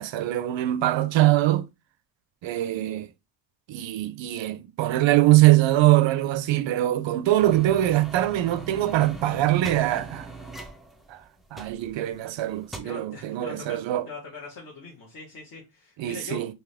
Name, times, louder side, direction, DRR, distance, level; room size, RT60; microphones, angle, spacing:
voice 1, 0.0-1.6 2.4-3.1 3.7-10.3 11.1-11.2 11.5-14.1 16.0-16.5, right 15 dB, 65° right, 0.6 m, -22 dB
sound 1, 7.4-12.2 12.5-12.8, right 2 dB, ahead, 0.4 m, -41 dB
voice 2, 12.8-16.4, left 4 dB, 45° left, 1.3 m, -41 dB
3.6 x 2.8 x 3.3 m
cardioid pair, 125°, 49 cm